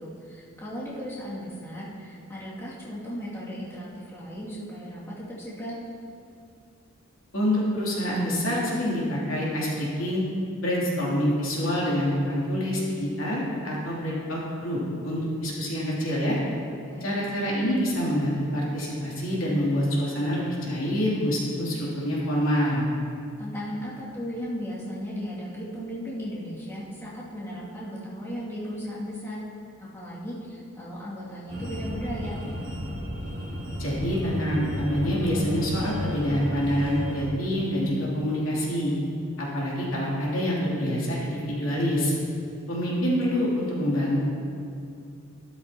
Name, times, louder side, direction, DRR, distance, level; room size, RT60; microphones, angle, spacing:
voice 1, 0.0-5.8 16.8-17.2 23.4-29.4 29.8-32.3, equal, 15° left, -10 dB, 2.4 m, -36 dB
voice 2, 7.3-10.2 10.6-16.4 17.0-22.9 33.8-38.9 39.4-42.1 42.7-44.2, equal, 70° left, -6 dB, 3.0 m, -26 dB
sound 1, 31.5-37.2, equal, 35° right, 2.2 m, -33 dB
13.0 x 13.0 x 3.0 m, 2.5 s
head